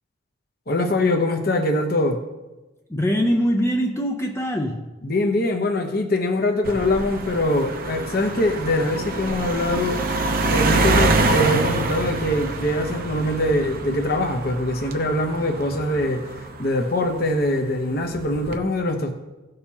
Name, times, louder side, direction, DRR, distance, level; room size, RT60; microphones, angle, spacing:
voice 1, 0.7-2.2 5.0-10.0 10.5-16.2 16.6-19.1, left 1 dB, 45° left, 0.9 m, -23 dB
voice 2, 2.9-4.9, equal, 15° left, 0.5 m, -22 dB
sound 1, 6.6-17.4 18.1-18.6, right 2 dB, 45° right, 0.7 m, -25 dB
17.0 x 6.6 x 2.9 m
head